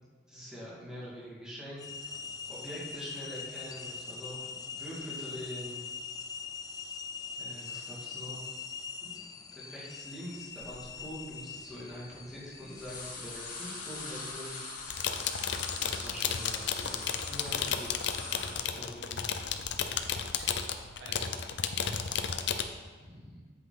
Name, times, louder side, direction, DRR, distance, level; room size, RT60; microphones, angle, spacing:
voice 1, 0.3-2.0 2.5-5.8 7.4-8.5 9.0-14.7 15.8-17.9 18.5-19.3 23.0-23.4, equal, 5° right, -8 dB, 2.4 m, -44 dB
sound 1, 1.8-17.1, left 5 dB, 20° left, 0.4 m, -44 dB
sound 2, 11.3-11.4 11.6-12.3 12.5-18.6, left 3 dB, 45° left, 1.8 m, -42 dB
sound 3, 14.8-22.6, left 7 dB, 70° left, 0.6 m, -33 dB
voice 2, 20.1-22.8, right 2 dB, 70° right, -2 dB, 1.6 m, -54 dB
8.3 x 7.8 x 4.1 m, 1.6 s
head